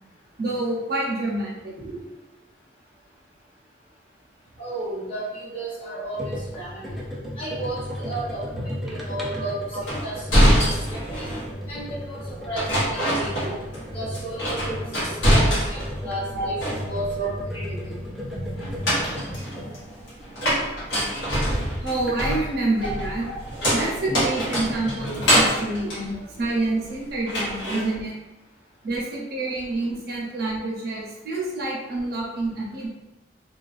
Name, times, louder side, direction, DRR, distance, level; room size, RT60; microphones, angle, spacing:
voice 1, 0.4-1.7 8.5-8.6 9.4-9.8 11.2-11.3 16.3-16.5 17.2-17.3 21.8-23.3 23.7-28.2 28.8-32.9, right 2 dB, 60° right, -3 dB, 0.6 m, -27 dB
voice 2, 4.6-7.0 7.4-10.6 10.9-11.3 11.7-13.6 13.9-18.0, right 1 dB, 30° left, -7 dB, 0.8 m, -34 dB
sound 1, 6.2-22.5 23.6-25.5, equal, ahead, 0.3 m, -35 dB
sound 2, 9.9-11.5 12.6-13.9 14.1-16.0 16.3-17.2 18.6-26.9 27.3-27.9, equal, 80° left, 0.9 m, -24 dB
2.3 x 2.2 x 2.4 m, 1.0 s
head